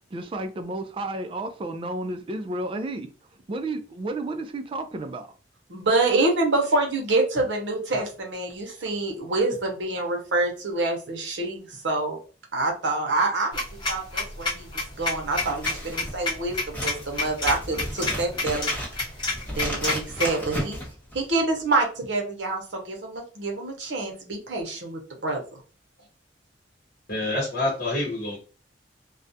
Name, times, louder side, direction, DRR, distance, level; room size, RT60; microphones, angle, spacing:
voice 1, 0.1-3.1 3.5-5.3, right 2 dB, 30° right, 0.3 m, -32 dB
voice 2, 5.7-12.2 12.5-18.7 19.5-20.8 21.1-25.4, right 2 dB, 70° right, 0.7 m, -26 dB
sound 1, 13.5-20.3, left 3 dB, 25° left, 0.8 m, -28 dB
Scissors, 15.3-21.6, equal, 10° left, 1.3 m, -35 dB
voice 3, 27.1-28.4, left 2 dB, 55° left, 0.8 m, -27 dB
2.3 x 2.1 x 2.6 m
head